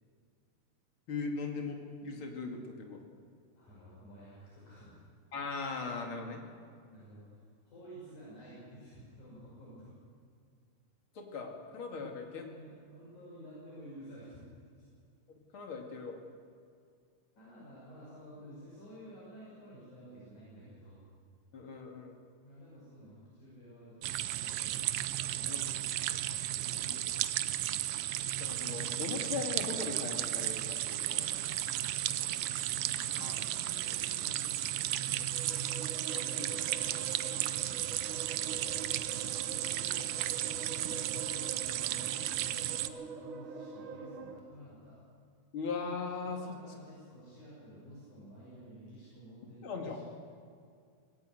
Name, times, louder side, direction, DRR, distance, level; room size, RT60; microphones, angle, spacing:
voice 1, 1.1-3.0 5.3-6.4 11.1-12.4 15.3-16.2 21.5-22.2 25.5-25.6 26.8-27.0 28.4-31.4 33.2-33.3 36.1-36.7 37.7-37.9 45.5-46.6 49.6-50.0, left 4 dB, 40° left, 2 dB, 3.0 m, -39 dB
voice 2, 3.6-5.0 6.9-9.9 11.9-14.5 17.4-21.0 22.4-26.9 31.1-35.8 38.0-38.7 39.1-45.0 46.2-50.0, equal, 65° left, -7 dB, 7.1 m, -52 dB
sound 1, 24.0-42.9, right 13 dB, 85° right, 1.4 m, -34 dB
sound 2, 35.0-44.4, right 4 dB, 50° right, 1.8 m, -45 dB
19.0 x 17.5 x 8.0 m, 2.3 s
omnidirectional pair, 3.7 m